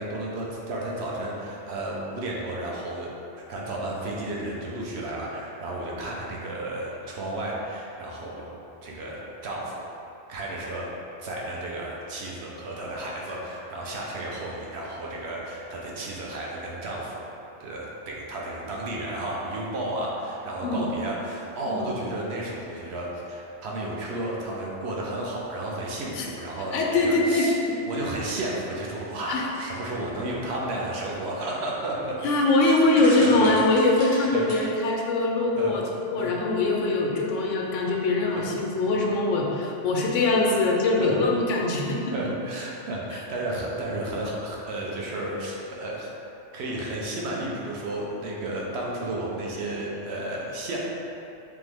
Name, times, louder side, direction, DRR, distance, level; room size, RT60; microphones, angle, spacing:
voice 1, 0.0-3.1 3.5-8.4 8.8-9.8 10.3-10.9 11.2-17.3 17.6-27.6 27.9-32.2 33.2-33.5 34.3-34.4 35.6-35.8 36.2-36.3 41.0-41.2 42.1-46.1 46.5-50.8, right 1 dB, 65° right, -3 dB, 0.9 m, -32 dB
voice 2, 26.7-27.8 29.3-29.4 32.2-35.8 36.1-42.1 43.1-43.2, left 2 dB, 90° left, 0 dB, 0.9 m, -23 dB
sound 1, 29.1-29.8 30.8-30.9 31.1-31.2 32.2-34.6, equal, 45° right, 1.6 m, -39 dB
3.7 x 3.0 x 3.3 m, 2.9 s
omnidirectional pair, 1.2 m